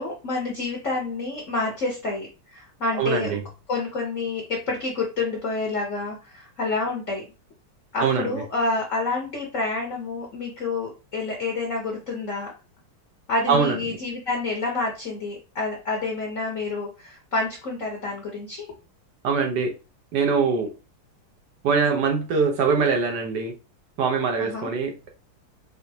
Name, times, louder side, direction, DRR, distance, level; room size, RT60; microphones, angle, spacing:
voice 1, 0.0-3.3 3.7-7.2 7.9-12.5 13.3-18.6 24.4-24.7, left 3 dB, 50° left, 1.0 m, -28 dB
voice 2, 2.9-3.4 8.0-8.4 13.5-13.8 19.2-19.7 20.1-20.7 21.6-23.5 24.0-24.9, right 5 dB, 60° right, 1.2 m, -22 dB
5.2 x 2.7 x 2.8 m
omnidirectional pair, 2.4 m